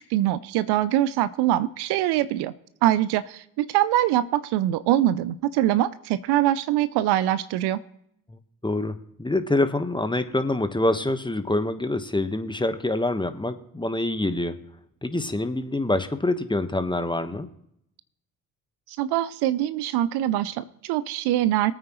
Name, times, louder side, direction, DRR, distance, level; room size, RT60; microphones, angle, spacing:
voice 1, 0.0-2.5 2.8-7.8 18.9-21.7, right 13 dB, 65° right, 15 dB, 0.7 m, -23 dB
voice 2, 8.6-14.6 15.0-17.5, left 2 dB, 10° left, 9 dB, 1.3 m, -26 dB
22.0 x 8.9 x 3.1 m, 0.75 s
hypercardioid pair, 40°, 43 cm